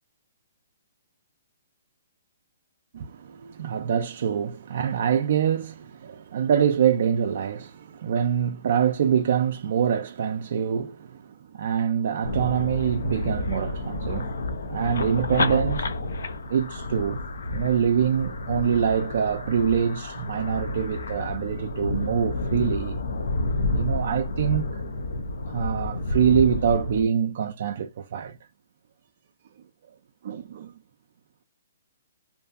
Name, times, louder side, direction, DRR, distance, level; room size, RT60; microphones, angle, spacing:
voice 1, 2.9-11.2 11.5-14.4 14.7-15.9 16.5-17.2 17.5-23.0 23.7-24.8 25.5-28.4 30.2-30.7, right 8 dB, 55° right, 0.3 m, -25 dB
sound 1, 12.2-27.0, left 2 dB, 75° left, 0.5 m, -30 dB
2.5 x 2.4 x 2.4 m
hypercardioid pair, 145°, 0 cm